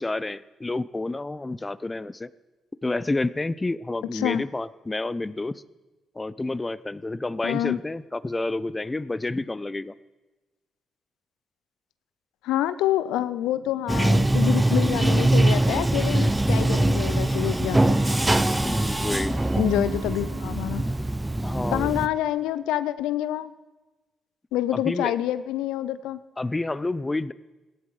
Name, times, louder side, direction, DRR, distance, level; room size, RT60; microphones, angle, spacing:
voice 1, 0.0-2.3 2.8-5.6 6.2-9.9 18.6-19.4 21.4-21.9 24.7-25.1 26.4-27.3, left 2 dB, 25° left, 18 dB, 0.6 m, -29 dB
voice 2, 4.1-4.4 7.4-7.8 12.4-18.0 19.6-20.9 21.7-23.5 24.5-26.2, left 13 dB, 75° left, 15 dB, 0.4 m, -27 dB
Bathtub (filling or washing), 13.9-22.1, right 1 dB, 15° right, 0.8 m, -22 dB
sound 1, 17.7-22.3, right 4 dB, 90° right, 2.1 m, -47 dB
17.0 x 10.5 x 4.9 m, 1.1 s
hypercardioid pair, 45°, 0 cm